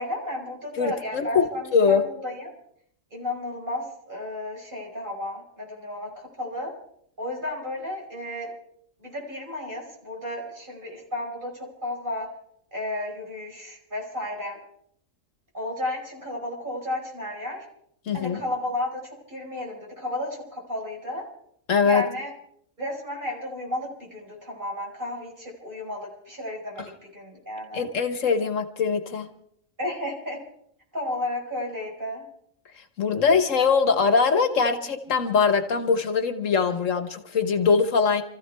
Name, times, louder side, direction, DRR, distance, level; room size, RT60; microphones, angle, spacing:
voice 1, 0.0-2.5 3.1-6.7 7.2-8.5 9.0-12.3 12.7-14.6 15.5-17.7 18.1-21.3 21.8-22.3 22.8-27.9 29.8-30.4 30.9-32.3, left 1 dB, 40° right, -1 dB, 5.4 m, -33 dB
voice 2, 0.8-2.0 18.1-18.4 21.7-22.0 27.7-29.3 33.0-38.2, left 5 dB, 75° left, 8 dB, 1.6 m, -22 dB
28.5 x 14.5 x 3.5 m, 0.70 s
omnidirectional pair, 1.3 m